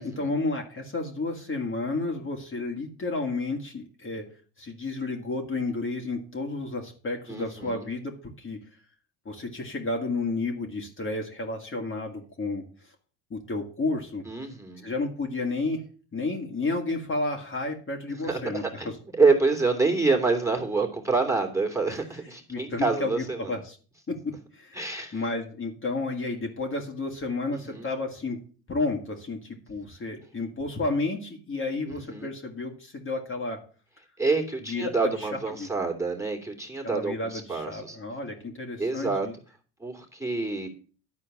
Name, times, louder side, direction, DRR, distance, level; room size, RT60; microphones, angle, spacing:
voice 1, 0.0-4.2 4.6-8.6 9.3-12.6 13.3-14.2 14.8-15.8 16.1-18.6 22.5-23.8 24.1-24.2 24.5-24.8 25.1-28.4 28.7-33.6 34.7-35.3 35.6-35.7 36.8-39.3, left 3 dB, 30° left, 1 dB, 2.2 m, -31 dB
voice 2, 7.3-7.9 14.3-14.9 18.2-18.9 19.1-23.6 24.7-25.2 27.5-27.9 31.8-32.3 34.2-38.0 38.8-39.3 39.8-40.7, right 3 dB, 5° right, 1 dB, 2.6 m, -27 dB
11.0 x 4.4 x 7.2 m, 0.39 s
hypercardioid pair, 75°, 43 cm